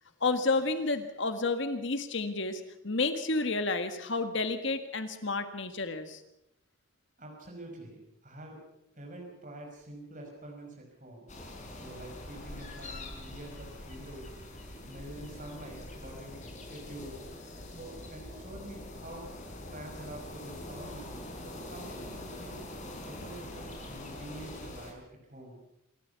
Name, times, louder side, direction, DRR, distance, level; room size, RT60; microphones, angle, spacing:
voice 1, 0.2-6.2, left 3 dB, 60° left, 8 dB, 1.7 m, -30 dB
voice 2, 7.2-8.6 9.0-11.4 11.7-14.3 14.8-17.2 17.8-19.3 19.7-22.6 23.0-25.6, right 1 dB, 40° right, 0 dB, 5.5 m, -46 dB
sound 1, 11.3-24.9, left 1 dB, 35° left, 4.4 m, -44 dB
27.0 x 14.5 x 7.0 m, 0.84 s
head